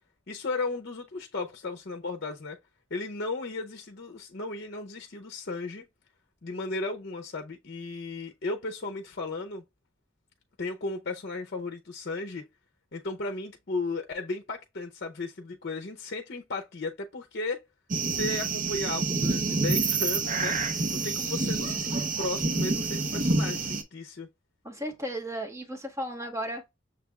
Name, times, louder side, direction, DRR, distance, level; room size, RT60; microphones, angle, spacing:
voice 1, 0.3-2.6 2.9-5.8 6.4-9.6 10.6-12.4 12.9-17.6 18.1-20.6 20.9-24.3, left 3 dB, 55° left, 0.7 m, -35 dB
sound 1, 17.9-23.8, right 3 dB, 40° right, 0.8 m, -28 dB
voice 2, 24.6-26.7, right 1 dB, 15° right, 1.3 m, -35 dB
6.5 x 3.3 x 2.3 m
head